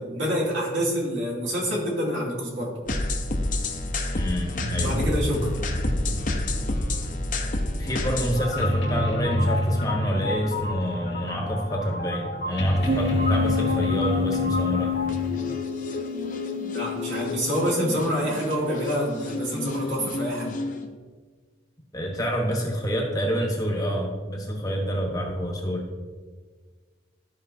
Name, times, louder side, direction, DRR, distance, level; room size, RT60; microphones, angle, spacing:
voice 1, 0.0-2.7 4.8-5.5 16.7-20.5, equal, 80° right, -4 dB, 2.5 m, -27 dB
sound 1, 2.9-20.9, left 2 dB, 45° left, 0.8 m, -31 dB
sound 2, 3.8-15.6, equal, 70° left, 1.3 m, -29 dB
voice 2, 4.1-5.1 7.8-14.9 21.9-25.9, equal, 20° left, 0 dB, 1.1 m, -28 dB
sound 3, 12.9-19.9, left 5 dB, 30° right, 0.4 m, -30 dB
13.5 x 5.0 x 2.7 m, 1.5 s
head